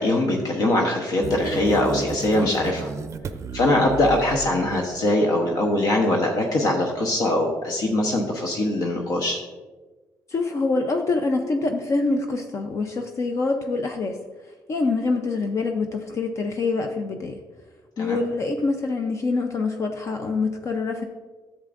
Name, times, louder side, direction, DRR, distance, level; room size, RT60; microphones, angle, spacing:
voice 1, 0.0-2.9 3.5-9.4 18.0-18.2, left 1 dB, 65° left, 1 dB, 1.0 m, -22 dB
sound 1, 1.2-4.9, right 5 dB, 45° right, 0.5 m, -33 dB
voice 2, 10.3-14.2 14.7-17.4 18.0-21.0, left 3 dB, 45° left, 4 dB, 0.6 m, -25 dB
10.5 x 7.5 x 2.5 m, 1.3 s
cardioid pair, 105°, 7 cm